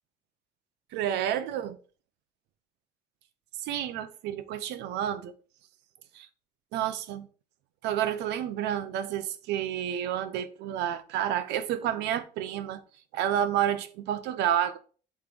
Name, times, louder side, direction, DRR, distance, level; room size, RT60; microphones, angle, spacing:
voice 1, 0.9-1.8 3.6-5.3 6.1-6.3 6.7-7.3 7.8-12.8 13.1-14.8, right 10 dB, 85° right, 0.8 m, -30 dB
8.1 x 3.4 x 5.0 m
cardioid pair, 110°, 17 cm